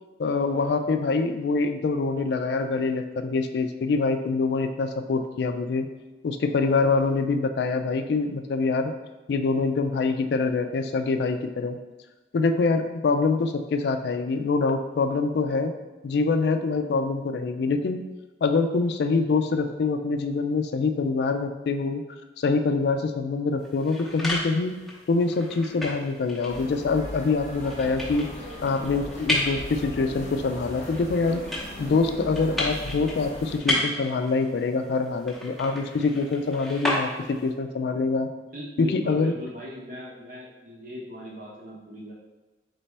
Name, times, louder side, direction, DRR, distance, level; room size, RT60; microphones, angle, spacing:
voice 1, 0.2-5.9 6.2-8.9 9.3-11.8 12.3-15.7 16.0-18.0 18.4-22.0 22.4-24.8 25.1-28.3 28.6-31.5 31.8-38.3 38.8-39.3, left 4 dB, 65° left, 7 dB, 0.3 m, -25 dB
sound 1, 23.6-37.5, left 1 dB, ahead, 0.7 m, -33 dB
sound 2, 26.5-33.6, left 1 dB, 40° left, 0.8 m, -38 dB
voice 2, 38.5-42.1, left 1 dB, 50° right, -3 dB, 0.8 m, -39 dB
4.1 x 3.3 x 3.3 m, 1.2 s
head